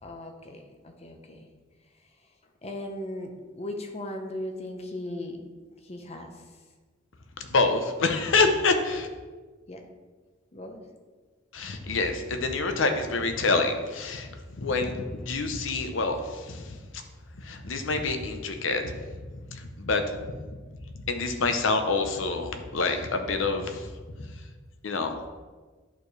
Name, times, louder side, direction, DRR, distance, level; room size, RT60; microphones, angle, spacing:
voice 1, 0.0-1.5 2.6-5.6 5.8-6.3 9.7-9.8 10.5-10.9, left 1 dB, 30° left, 4 dB, 0.8 m, -37 dB
voice 2, 7.4-9.1 11.5-16.8 17.4-20.1 21.1-23.9 24.2-24.3 24.8-25.3, left 3 dB, 75° left, 6 dB, 0.8 m, -27 dB
10.5 x 4.6 x 3.3 m, 1.4 s
head